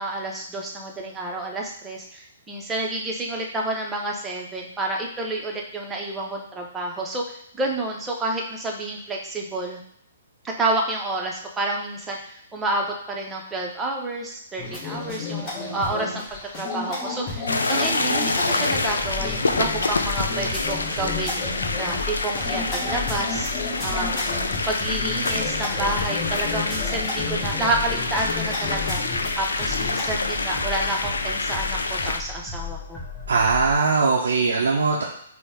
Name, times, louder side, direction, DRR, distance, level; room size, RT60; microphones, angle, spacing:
voice 1, 0.0-7.2 7.5-9.8 10.4-16.2 16.5-21.4 21.8-24.3 24.7-29.0 29.4-33.0, right 2 dB, 10° right, -1 dB, 0.7 m, -29 dB
sound 1, 14.6-30.1, left 3 dB, 30° left, 1.4 m, -32 dB
sound 2, 17.5-32.2, left 3 dB, 75° left, 0.3 m, -27 dB
sound 3, 18.9-33.8, left 5 dB, 10° left, 1.2 m, -36 dB
voice 2, 33.3-35.0, right 4 dB, 65° right, -2 dB, 0.5 m, -20 dB
4.0 x 2.1 x 3.6 m, 0.70 s
figure-of-eight pair, 125°, 0 cm